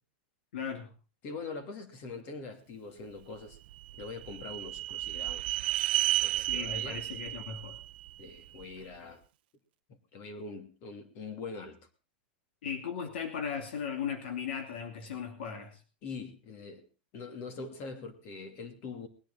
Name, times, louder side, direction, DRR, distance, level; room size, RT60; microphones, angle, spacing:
voice 1, 0.5-0.9 6.4-7.8 12.6-15.8, left 7 dB, 80° left, 4 dB, 2.6 m, -37 dB
voice 2, 1.2-3.6 3.9-5.6 6.2-7.0 8.2-9.2 10.1-11.8 16.0-16.9 17.1-19.1, left 4 dB, 40° left, 7 dB, 2.8 m, -43 dB
sound 1, 3.5-8.7, right 16 dB, 65° right, 0.6 m, -33 dB
20.0 x 10.5 x 4.2 m, 0.32 s
supercardioid pair, 150°, 6 cm